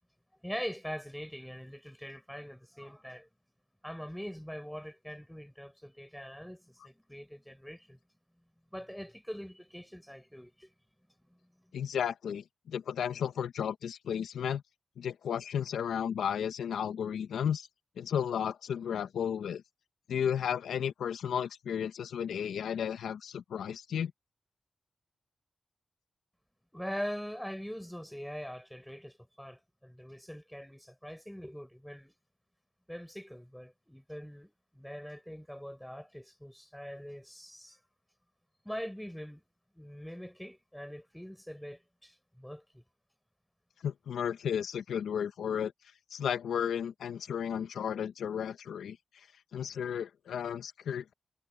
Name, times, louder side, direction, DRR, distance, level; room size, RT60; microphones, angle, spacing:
voice 1, 0.4-3.3 3.8-8.0 8.7-10.7 11.3-11.7 26.7-32.1 32.9-37.8 38.6-39.4 39.7-42.8, equal, 5° left, 4.6 m, -43 dB
voice 2, 11.7-14.6 15.0-17.7 18.0-19.6 20.1-24.1 43.8-45.7 46.1-49.3 49.5-51.1, left 8 dB, 85° left, 1.3 m, -33 dB
supercardioid pair, 40°, 0 cm